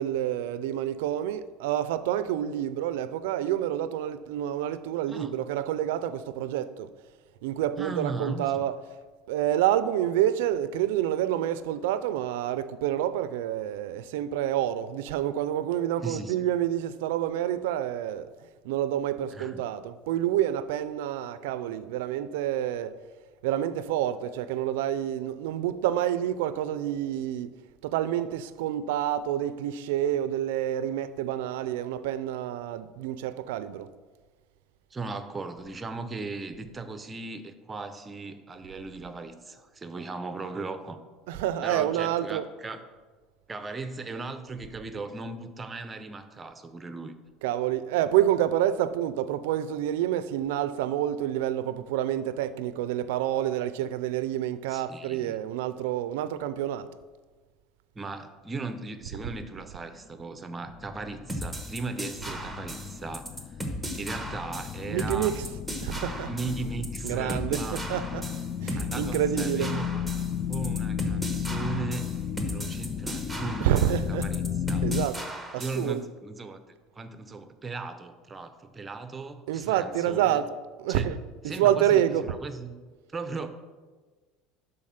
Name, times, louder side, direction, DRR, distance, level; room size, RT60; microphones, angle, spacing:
voice 1, 0.0-6.9 7.4-8.8 9.3-18.3 18.6-23.0 23.4-27.5 27.8-33.9 41.3-42.5 47.4-56.9 59.1-59.3 64.9-66.3 67.0-68.3 68.6-69.7 73.6-74.3 74.8-75.2 75.5-76.1 79.5-80.5 80.8-82.3, right 11 dB, 90° right, 0.5 m, -28 dB
voice 2, 7.8-8.7 16.0-16.3 19.3-19.6 34.9-41.0 41.6-42.8 43.5-47.2 54.7-55.4 57.9-63.3 64.0-65.3 66.3-68.0 68.8-70.1 70.5-72.2 72.5-73.8 74.1-74.4 74.7-74.8 75.6-76.6 77.0-80.4 80.9-81.1 81.5-82.7 83.1-83.5, right 3 dB, 20° right, 0.7 m, -37 dB
sound 1, 60.5-75.1, left 8 dB, 30° left, 0.4 m, -34 dB
sound 2, 61.3-75.9, right 1 dB, ahead, 1.2 m, -36 dB
11.5 x 4.0 x 5.8 m
supercardioid pair, 135°, 0 cm